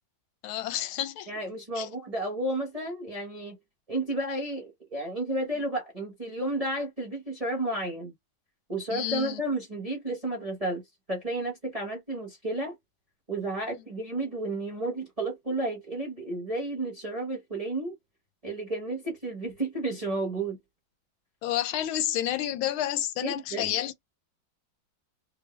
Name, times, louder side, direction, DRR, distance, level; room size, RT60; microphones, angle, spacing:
voice 1, 0.4-1.3 1.7-1.9 8.9-9.4 21.4-24.1, left 12 dB, 80° left, 1.5 m, -30 dB
voice 2, 1.3-3.6 3.9-8.1 8.7-10.8 11.1-12.8 13.3-17.9 18.4-20.6 23.2-23.8, right 2 dB, 25° right, 1.0 m, -32 dB
3.8 x 3.0 x 3.0 m
omnidirectional pair, 2.2 m